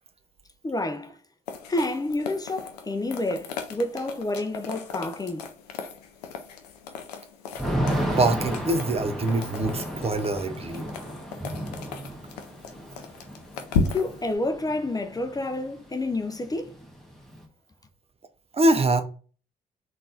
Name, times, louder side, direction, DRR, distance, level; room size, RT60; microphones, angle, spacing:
voice 1, 0.6-1.1 1.7-5.5 13.9-16.8, left 2 dB, 20° left, 0.5 m, -29 dB
sound 1, 1.5-14.3, left 5 dB, 85° left, 0.5 m, -36 dB
Thunder / Rain, 7.5-15.4 15.7-15.8 16.1-17.4, right 1 dB, ahead, 1.1 m, -33 dB
voice 2, 8.2-10.9 18.5-19.0, right 2 dB, 30° right, 0.6 m, -24 dB
3.8 x 2.5 x 3.8 m
hypercardioid pair, 45°, 20 cm